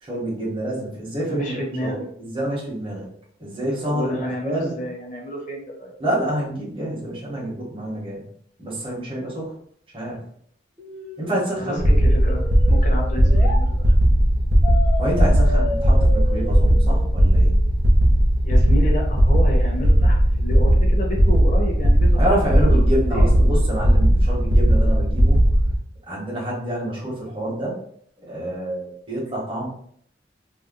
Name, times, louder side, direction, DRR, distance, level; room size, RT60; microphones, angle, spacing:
voice 1, 0.0-3.1 3.4-4.8 6.0-8.2 8.6-9.5 9.9-10.2 11.2-11.8 15.0-17.5 22.1-25.4 26.1-27.7 28.3-29.7, right 1 dB, 30° right, -5 dB, 1.1 m, -27 dB
voice 2, 1.2-2.1 3.8-5.9 11.6-13.9 18.4-22.7 23.1-23.4, equal, 45° left, -1 dB, 0.9 m, -30 dB
sound 1, 10.8-13.6 14.6-17.6, left 3 dB, 5° left, 0.8 m, -33 dB
sound 2, 11.8-25.8, equal, 70° right, 0.7 m, -17 dB
2.7 x 2.2 x 3.8 m, 0.64 s
head